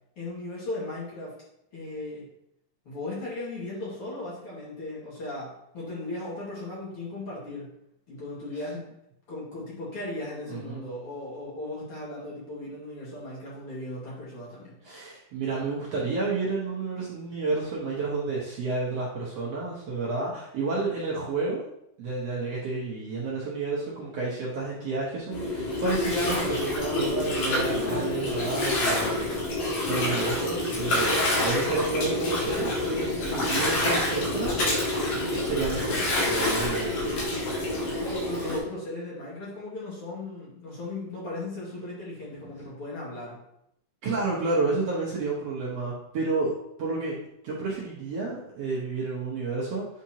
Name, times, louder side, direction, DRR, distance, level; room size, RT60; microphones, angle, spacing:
voice 1, 0.2-1.3 1.7-2.3 2.9-7.7 8.1-8.9 9.3-14.8 37.8-43.4, left 2 dB, 45° left, -6 dB, 2.5 m, -37 dB
voice 2, 10.5-10.8 14.8-21.6 22.0-29.5 29.9-34.9 35.1-37.4 44.0-46.5 46.8-47.2 47.4-49.9, right 3 dB, 60° right, -6 dB, 1.8 m, -30 dB
Gurgling, 25.3-38.6, left 1 dB, 80° left, 3.6 m, -27 dB
8.6 x 4.4 x 2.8 m, 0.78 s
omnidirectional pair, 3.7 m